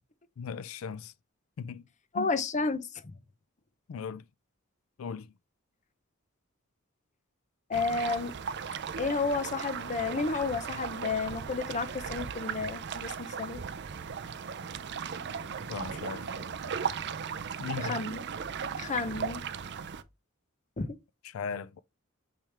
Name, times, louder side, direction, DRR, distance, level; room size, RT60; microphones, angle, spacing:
voice 1, 0.4-1.1 1.6-1.8 2.1-2.3 3.9-4.2 5.0-5.3 15.7-16.3 17.6-18.0 21.2-21.8, left 6 dB, 75° left, 0.4 m, -38 dB
voice 2, 2.1-3.1 7.7-8.3 9.0-13.6 17.8-18.2 18.8-19.4 20.8-21.0, left 4 dB, 35° left, 0.7 m, -31 dB
sound 1, 7.7-20.0, right 6 dB, 55° right, 0.5 m, -37 dB
8.6 x 3.4 x 3.3 m
head